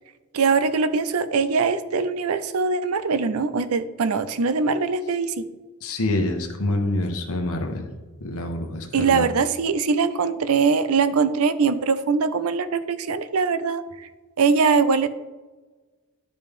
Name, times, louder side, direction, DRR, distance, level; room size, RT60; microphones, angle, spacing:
voice 1, 0.3-5.5 8.9-14.1 14.4-15.1, right 5 dB, 85° right, 13 dB, 0.5 m, -22 dB
voice 2, 5.8-7.9 8.2-9.3, left 1 dB, 85° left, 3 dB, 1.2 m, -26 dB
11.5 x 5.2 x 3.6 m, 1.3 s
head